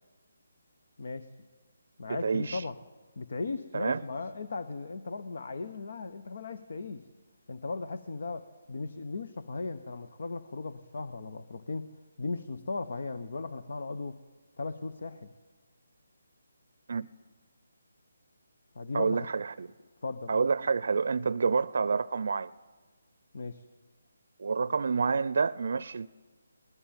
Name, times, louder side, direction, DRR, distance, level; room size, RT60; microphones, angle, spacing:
voice 1, 1.0-1.3 2.0-2.8 3.2-7.1 7.5-11.9 12.2-14.2 14.6-15.3 18.7-19.3 20.0-20.4 23.3-23.6, left 3 dB, 60° left, 1.1 m, -37 dB
voice 2, 2.1-2.6 3.7-4.0 16.9-17.1 18.9-19.7 20.3-22.5 24.4-26.1, right 5 dB, 60° right, 0.6 m, -28 dB
20.5 x 20.0 x 9.0 m
figure-of-eight pair, 150°, 0 cm